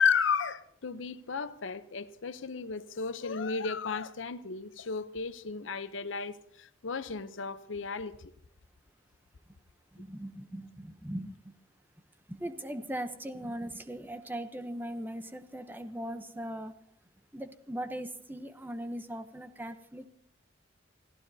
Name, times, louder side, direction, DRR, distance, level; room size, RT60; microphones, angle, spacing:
voice 1, 0.0-8.1, left 6 dB, 85° left, 0.7 m, -33 dB
voice 2, 9.9-11.5 12.3-16.7 17.3-20.1, right 1 dB, 10° right, 0.7 m, -39 dB
29.5 x 15.5 x 2.7 m
head